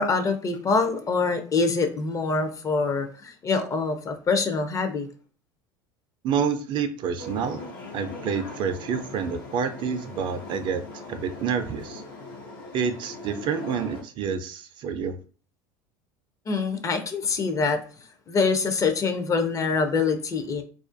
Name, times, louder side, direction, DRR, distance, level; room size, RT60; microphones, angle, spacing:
voice 1, 0.0-5.1 16.5-17.8 18.3-20.6, left 4 dB, 30° left, 7 dB, 0.4 m, -25 dB
voice 2, 6.2-7.6 7.9-10.8 11.1-12.0 12.7-15.2, right 6 dB, 45° right, 9 dB, 0.3 m, -28 dB
sound 1, 7.2-14.0, left 2 dB, 85° left, 0.7 m, -40 dB
2.4 x 2.1 x 2.5 m, 0.38 s
hypercardioid pair, 90°, 11 cm